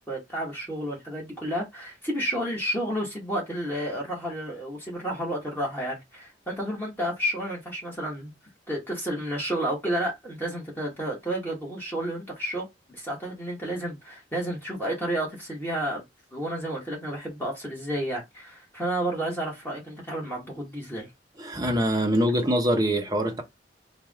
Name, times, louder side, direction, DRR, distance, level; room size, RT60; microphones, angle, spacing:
voice 1, 0.0-8.3 8.7-16.0 16.3-21.1, right 1 dB, 10° left, 1.5 m, -31 dB
voice 2, 21.4-23.4, equal, 20° right, 0.9 m, -24 dB
4.7 x 2.5 x 3.6 m
head